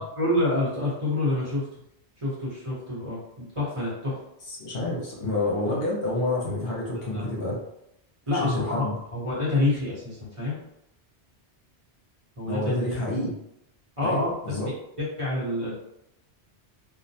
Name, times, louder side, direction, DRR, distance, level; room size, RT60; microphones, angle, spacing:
voice 1, 0.0-1.6 2.2-4.1 7.1-7.2 8.3-8.8 9.1-10.6 12.4-12.6 14.0-14.3 15.0-15.7, left 2 dB, 30° right, -8 dB, 0.9 m, -27 dB
voice 2, 4.5-7.6 8.3-8.9 12.5-13.3 14.0-14.7, left 2 dB, 65° left, -3 dB, 0.8 m, -28 dB
2.3 x 2.1 x 2.6 m, 0.79 s
omnidirectional pair, 1.1 m